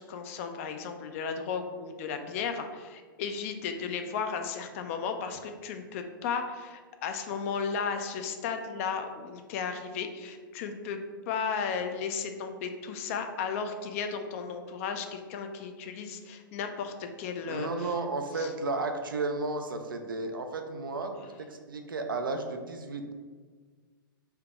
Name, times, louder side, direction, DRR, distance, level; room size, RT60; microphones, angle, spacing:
voice 1, 0.1-11.0 11.3-17.9 18.3-18.5, left 6 dB, 40° left, 6 dB, 0.4 m, -34 dB
voice 2, 17.5-23.1, right 3 dB, 65° right, 5 dB, 0.5 m, -33 dB
3.5 x 2.8 x 4.6 m, 1.5 s
figure-of-eight pair, 110°, 12 cm